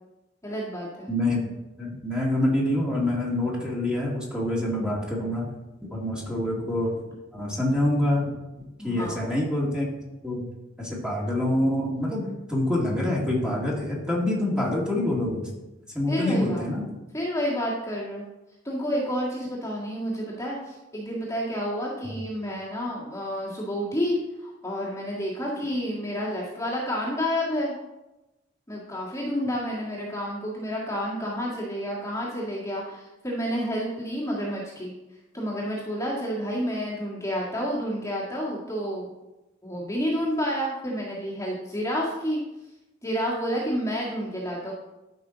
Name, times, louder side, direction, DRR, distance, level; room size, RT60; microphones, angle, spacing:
voice 1, 0.4-1.1 8.8-9.2 16.1-16.6 17.1-18.2 18.6-27.7 28.7-34.9 35.3-39.1 39.6-42.4 43.0-44.7, equal, 15° left, -5 dB, 1.9 m, -29 dB
voice 2, 1.1-1.5 1.8-5.5 5.9-7.0 7.3-8.4 8.8-9.9 10.2-10.5 10.8-15.5 15.9-16.9 22.0-22.1, left 1 dB, 5° right, -4 dB, 2.1 m, -26 dB
13.0 x 5.5 x 3.9 m, 1.0 s
head